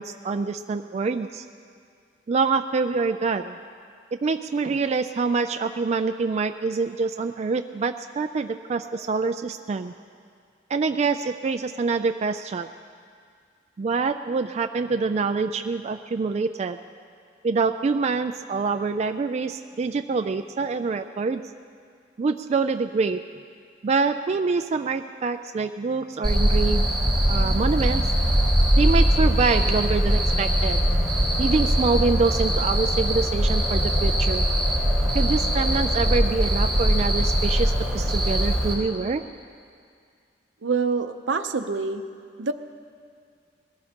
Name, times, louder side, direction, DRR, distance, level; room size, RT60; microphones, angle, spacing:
voice 1, 0.0-1.4 2.3-3.6 4.2-9.9 10.7-12.7 13.8-16.8 17.4-21.5 22.2-23.2 23.8-26.9 27.3-28.1 28.8-30.8 31.4-34.5 35.1-39.2, right 4 dB, 35° right, 7 dB, 0.3 m, -25 dB
Cricket, 26.2-38.7, equal, 5° left, 4.6 m, -21 dB
voice 2, 40.6-42.0 42.4-42.5, right 4 dB, 75° right, 8 dB, 0.7 m, -26 dB
21.0 x 16.0 x 2.9 m, 2.2 s
head